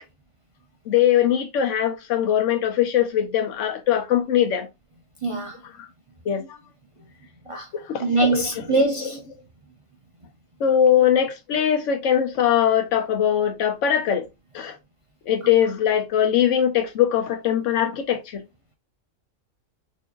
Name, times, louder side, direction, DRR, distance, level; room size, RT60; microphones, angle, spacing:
voice 1, 0.9-4.7 6.3-6.5 7.7-8.4 8.7-8.8 10.6-14.2 14.5-14.7 15.3-18.4, left 9 dB, 75° left, 1.1 m, -21 dB
voice 2, 5.2-5.6 7.5-7.7 8.0-9.2, right 2 dB, 45° right, 0.4 m, -23 dB
4.4 x 2.7 x 2.4 m
omnidirectional pair, 1.3 m